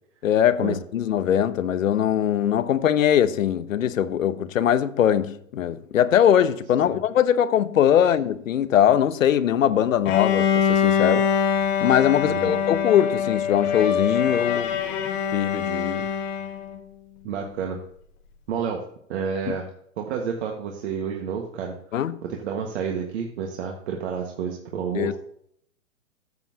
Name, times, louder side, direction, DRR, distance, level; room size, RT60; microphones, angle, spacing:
voice 1, 0.2-11.3 11.8-14.8 15.3-16.1 19.5-19.6 21.9-22.2 24.9-25.1, left 10 dB, 70° left, 0.9 m, -21 dB
Bowed string instrument, 10.1-16.8, left 7 dB, 10° left, 0.3 m, -24 dB
voice 2, 12.2-12.6 17.2-17.8 18.5-18.8 19.1-19.7 20.0-21.8 22.2-25.1, right 6 dB, 55° right, 1.7 m, -30 dB
14.0 x 7.3 x 2.8 m
hypercardioid pair, 125°, 41 cm